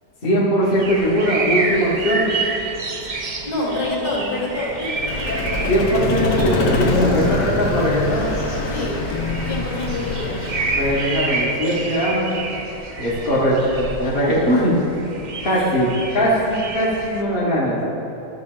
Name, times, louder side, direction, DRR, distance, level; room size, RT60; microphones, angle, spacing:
voice 1, 0.2-2.3 5.7-8.3 10.8-12.3 13.0-14.7 15.4-17.8, equal, 35° left, -6 dB, 1.3 m, -20 dB
sound 1, 0.6-17.2, right 3 dB, 60° right, 0.4 m, -29 dB
voice 2, 3.4-5.0 6.9-7.8 8.7-9.1 9.5-10.4 14.2-14.3 15.4-15.7, left 2 dB, 60° left, -5 dB, 2.8 m, -27 dB
Vehicle, 4.9-11.3, left 3 dB, 80° left, 1.6 m, -24 dB
13.0 x 6.2 x 3.7 m, 3.0 s
omnidirectional pair, 1.8 m